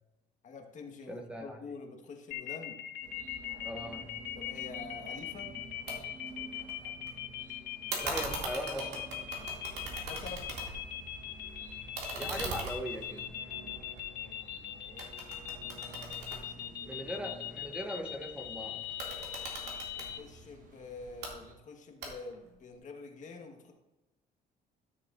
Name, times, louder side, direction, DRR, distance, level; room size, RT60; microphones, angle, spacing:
voice 1, 0.4-2.8 4.3-5.5 9.9-10.5 14.1-16.0 16.3-17.0 19.9-23.7, left 4 dB, 45° left, 3 dB, 1.4 m, -48 dB
voice 2, 1.1-1.7 3.6-4.1 8.0-9.1 12.1-13.3 16.9-18.9, equal, 5° right, 3 dB, 0.7 m, -39 dB
sound 1, 2.3-20.2, left 12 dB, 75° left, 0.7 m, -40 dB
sound 2, 3.0-21.5, right 2 dB, 50° right, 1.2 m, -51 dB
sound 3, 5.9-6.0 6.3-7.1 7.9-11.0 11.3-14.6 15.0-17.2 18.8-20.1 21.0-21.3 22.0-22.5, right 3 dB, 80° right, 2.3 m, -40 dB
12.5 x 6.7 x 2.5 m, 1.0 s
cardioid pair, 110°, 17 cm